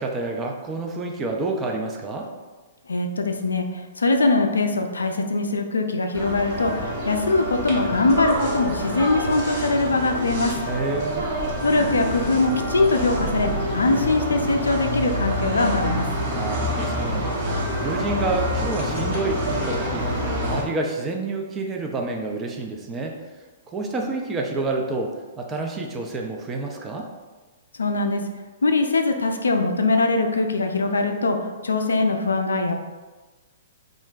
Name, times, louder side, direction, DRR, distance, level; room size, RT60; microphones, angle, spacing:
voice 1, 0.0-2.3 10.7-11.3 16.3-17.3 17.8-23.2 23.7-27.1, right 2 dB, 20° right, 1 dB, 0.4 m, -28 dB
voice 2, 2.9-10.5 11.6-16.1 27.8-28.2 28.6-32.8, left 3 dB, 75° left, 5 dB, 0.3 m, -22 dB
sound 1, 6.1-20.6, equal, 45° right, 0.8 m, -27 dB
2.4 x 2.1 x 3.9 m, 1.3 s
figure-of-eight pair, 115°, 0 cm